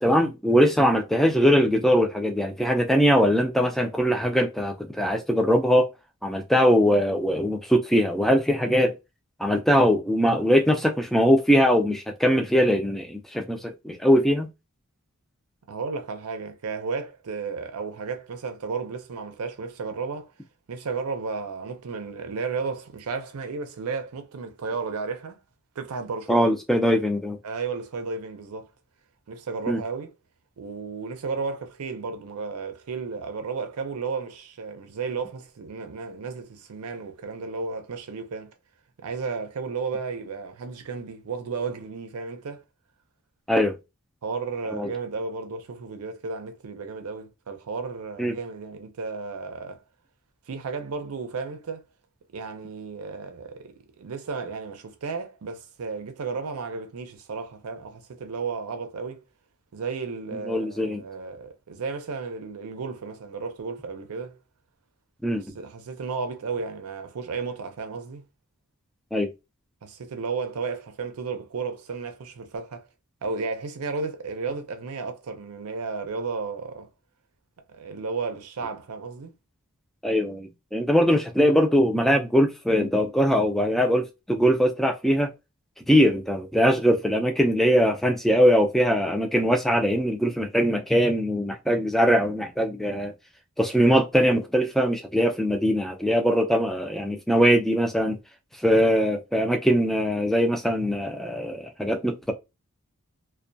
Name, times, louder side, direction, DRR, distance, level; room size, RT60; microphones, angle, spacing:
voice 1, 0.0-5.9 6.2-8.9 9.4-14.5 26.3-27.4 29.7-29.8 43.5-43.8 44.7-44.9 48.2-48.3 60.3-61.0 65.2-65.4 69.1-69.3 80.0-85.3 85.9-93.1 93.6-98.2 98.6-102.3, equal, ahead, 0.3 m, -21 dB
voice 2, 15.7-20.3 20.7-25.4 25.8-26.4 27.4-28.7 29.3-30.1 30.6-38.5 39.0-42.6 44.2-49.8 50.5-51.9 52.3-59.2 59.7-64.4 65.5-68.2 69.8-72.9 73.2-76.9 77.7-79.3, right 4 dB, 85° right, 0.5 m, -33 dB
2.2 x 2.1 x 2.6 m
head